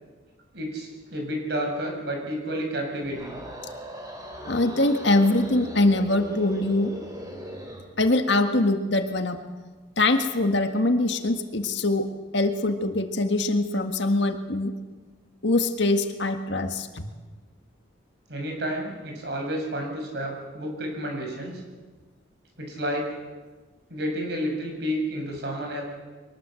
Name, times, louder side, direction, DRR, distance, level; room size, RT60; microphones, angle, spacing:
voice 1, 0.5-3.4 18.3-21.6 22.6-23.1 23.9-25.8, equal, 55° right, 2 dB, 6.8 m, -30 dB
sound 1, 3.0-7.9, equal, 20° right, 3.9 m, -39 dB
voice 2, 4.5-6.9 8.0-9.4 10.0-12.1 12.3-14.7 15.4-17.1, left 2 dB, 65° left, 6 dB, 1.8 m, -23 dB
23.0 x 20.0 x 7.8 m, 1.3 s
head